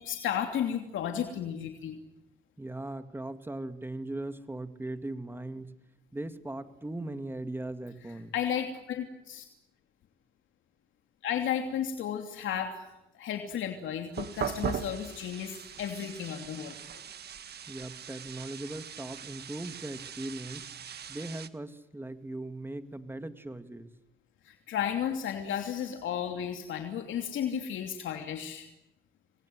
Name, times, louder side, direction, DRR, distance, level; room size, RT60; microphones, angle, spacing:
voice 1, 0.0-2.0 8.3-9.5 11.2-12.7 13.1-16.8 24.4-28.7, left 9 dB, 80° left, 4 dB, 2.9 m, -33 dB
voice 2, 2.6-5.8 6.1-8.3 17.7-20.7 21.1-23.9, right 2 dB, 10° right, 9 dB, 2.4 m, -39 dB
sound 1, 14.1-21.5, right 8 dB, 55° right, 1.8 m, -40 dB
28.5 x 22.5 x 8.0 m, 0.92 s
cardioid pair, 90°, 20 cm